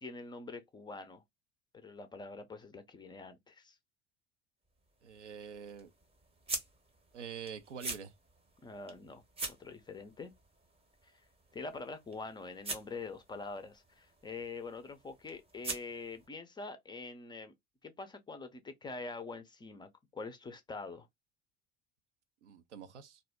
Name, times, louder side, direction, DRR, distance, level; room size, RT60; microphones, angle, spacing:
voice 1, 0.0-1.2 1.7-3.8 8.6-9.2 9.6-10.3 11.0-11.1 11.5-17.5 17.8-21.1, left 3 dB, 15° left, 0.4 m, -45 dB
sound 1, 4.6-16.3, right 3 dB, 15° right, 0.7 m, -46 dB
voice 2, 5.0-5.9 7.1-8.1 22.4-23.2, right 7 dB, 80° right, 0.5 m, -46 dB
2.4 x 2.0 x 3.3 m
figure-of-eight pair, 65°, 35 cm